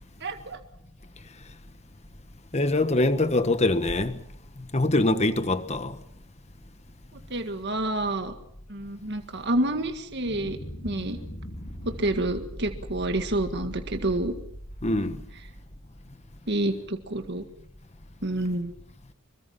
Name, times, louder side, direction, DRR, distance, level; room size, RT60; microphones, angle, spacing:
voice 1, 0.2-0.6 7.3-8.3 8.7-10.6 10.8-11.2 12.0-14.3 16.5-17.4 18.2-18.7, right 1 dB, 50° right, 1.8 m, -28 dB
voice 2, 2.5-4.2 4.7-6.0 14.8-15.2, left 2 dB, 30° left, 1.4 m, -23 dB
sound 1, 10.2-16.0, equal, 45° left, 4.4 m, -40 dB
26.0 x 23.0 x 5.8 m
head